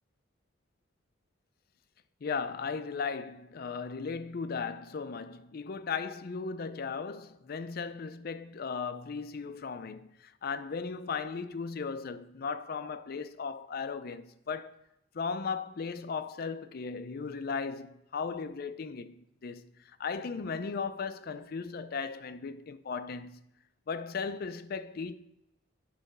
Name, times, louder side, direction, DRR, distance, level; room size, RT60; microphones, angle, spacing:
voice 1, 2.2-14.8 15.1-23.4 23.9-25.2, left 5 dB, 50° left, 0.4 m, -37 dB
8.7 x 3.9 x 5.4 m
head